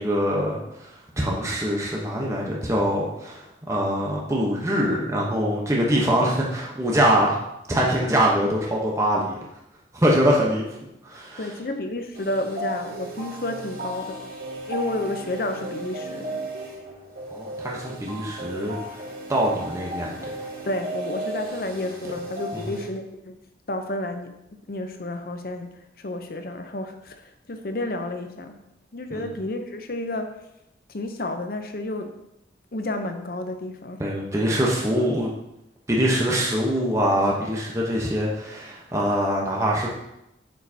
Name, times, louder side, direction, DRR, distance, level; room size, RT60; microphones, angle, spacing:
voice 1, 0.0-7.4 7.7-9.3 9.9-10.7 11.0-11.5 17.3-18.8 19.3-20.2 22.5-22.8 29.1-29.3 34.0-35.3 35.9-39.9, equal, 15° right, -3 dB, 0.9 m, -23 dB
voice 2, 11.4-14.2 14.7-16.4 20.7-23.4 23.7-25.7 26.0-28.6 28.9-30.3 30.9-32.2 32.7-34.0, left 1 dB, 55° left, 6 dB, 0.7 m, -31 dB
sound 1, 12.1-22.9, right 1 dB, 55° right, 1.7 m, -35 dB
7.2 x 6.4 x 2.8 m, 0.86 s
head